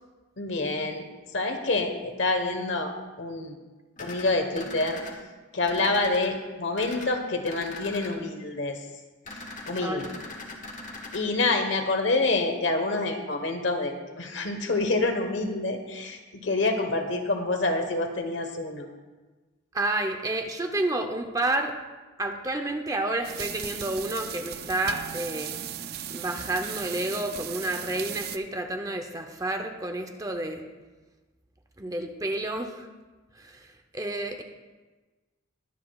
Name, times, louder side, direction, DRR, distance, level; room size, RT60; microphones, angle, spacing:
voice 1, 0.4-1.1 1.3-3.6 4.0-5.0 5.5-8.8 9.7-10.1 11.1-18.9, left 2 dB, 60° left, 5 dB, 1.2 m, -27 dB
sound 1, 4.0-5.1 5.7-6.3 6.7-7.1 7.4-8.1 9.3-11.2, left 2 dB, 40° left, 1.3 m, -41 dB
voice 2, 19.7-21.7 22.2-25.6 26.1-30.6 31.8-32.9 33.4-33.7 33.9-34.4, right 2 dB, 15° right, 5 dB, 0.7 m, -30 dB
sound 2, 23.2-28.4, right 9 dB, 50° right, 0.4 m, -37 dB
21.5 x 8.0 x 2.4 m, 1.2 s
head